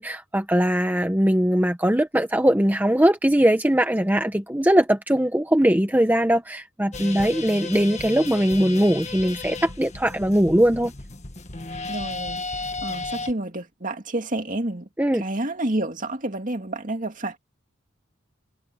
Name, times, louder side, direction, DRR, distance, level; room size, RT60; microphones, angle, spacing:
voice 1, 0.0-10.9 15.0-15.2, equal, 10° right, 1.0 m, -20 dB
sound 1, 6.9-13.3, left 3 dB, 35° left, 1.7 m, -34 dB
voice 2, 11.9-17.4, right 1 dB, 40° right, 2.4 m, -30 dB
head